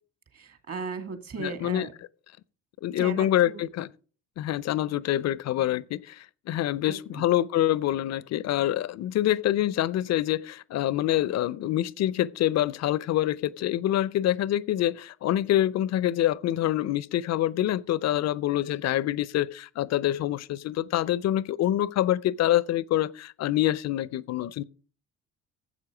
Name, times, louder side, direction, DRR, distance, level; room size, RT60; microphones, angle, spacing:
voice 1, 0.3-1.9 3.0-3.6 6.8-7.2, right 4 dB, 40° right, 2.2 m, -37 dB
voice 2, 1.4-1.9 2.8-3.9 4.4-24.6, left 13 dB, 45° left, 0.6 m, -26 dB
11.0 x 7.5 x 5.0 m
hypercardioid pair, 60°, 36 cm